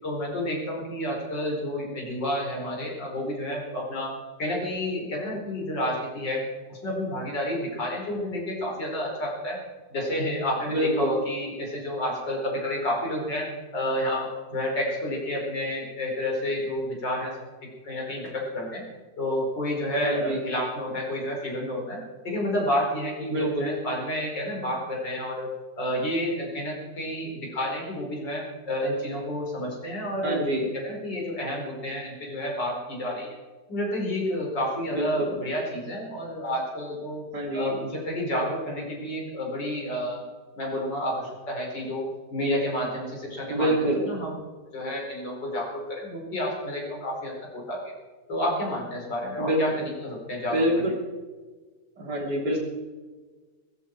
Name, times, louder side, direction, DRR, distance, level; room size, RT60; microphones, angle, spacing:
voice 1, 0.0-4.1 4.4-6.4 6.7-9.6 9.9-17.4 17.8-18.8 19.2-25.5 25.8-30.5 30.8-33.4 33.7-37.2 37.5-40.2 40.6-44.4 44.7-47.8 48.3-49.7 50.0-50.9, left 1 dB, 70° left, -2 dB, 5.5 m, -30 dB
voice 2, 10.7-11.1 20.0-20.4 23.3-23.7 30.2-30.7 34.9-35.3 37.3-37.8 43.5-44.0 49.4-49.6 50.5-50.9 52.0-52.6, equal, 60° right, 0 dB, 4.0 m, -26 dB
18.0 x 15.0 x 4.6 m, 1.3 s
omnidirectional pair, 2.0 m